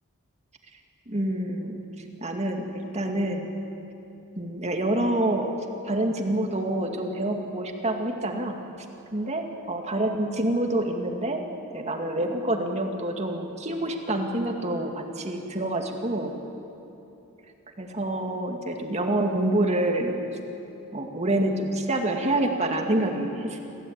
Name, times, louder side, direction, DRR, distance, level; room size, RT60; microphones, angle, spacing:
voice 1, 1.1-1.8 2.2-3.5 4.4-5.5 5.8-8.5 9.1-11.4 11.7-16.3 17.8-20.2 20.9-23.7, right 1 dB, 30° right, 3 dB, 2.2 m, -27 dB
28.0 x 15.5 x 8.9 m, 3.0 s
head